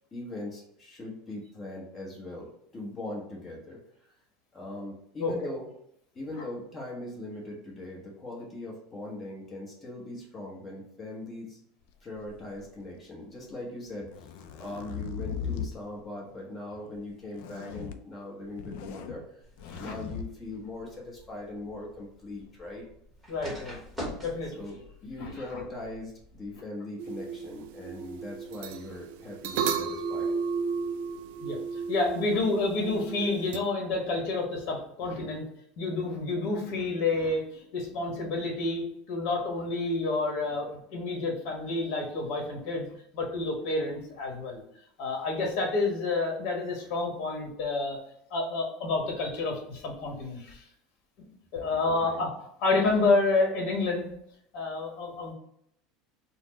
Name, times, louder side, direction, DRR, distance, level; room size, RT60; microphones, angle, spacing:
voice 1, 0.1-3.8 4.5-5.7 6.1-11.6 12.0-19.2 19.8-22.9 24.5-30.3 51.9-52.2, left 2 dB, 20° left, -2 dB, 0.9 m, -40 dB
sound 1, 12.2-13.0 13.9-15.8 17.3-18.0 18.4-19.2 19.6-20.3, left 7 dB, 70° left, 0.3 m, -38 dB
sound 2, 19.4-26.6, equal, ahead, 1.1 m, -46 dB
voice 2, 23.3-23.8 24.2-24.5 25.2-25.6 31.4-35.4 35.8-42.9 43.1-44.6 45.0-48.0 48.3-50.6 51.5-52.3 52.6-54.1 54.5-55.3, left 3 dB, 55° left, 0 dB, 1.2 m, -29 dB
sound 3, 27.0-33.6, right 5 dB, 80° right, 0.3 m, -34 dB
4.2 x 2.0 x 3.8 m, 0.73 s
supercardioid pair, 145°, 0 cm